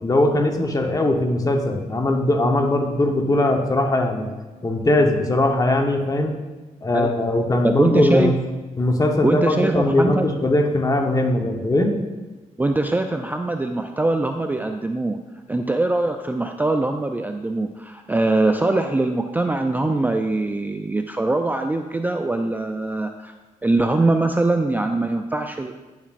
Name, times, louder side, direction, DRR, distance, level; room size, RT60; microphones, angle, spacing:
voice 1, 0.0-4.3 4.6-6.3 6.8-8.4 8.8-11.9, left 1 dB, 25° left, 3 dB, 1.0 m, -20 dB
voice 2, 7.6-8.3 9.2-10.3 12.6-15.2 15.5-23.3 23.6-25.7, right 2 dB, 15° right, 6 dB, 0.4 m, -22 dB
9.7 x 7.2 x 2.5 m, 1.2 s
cardioid pair, 75°, 13 cm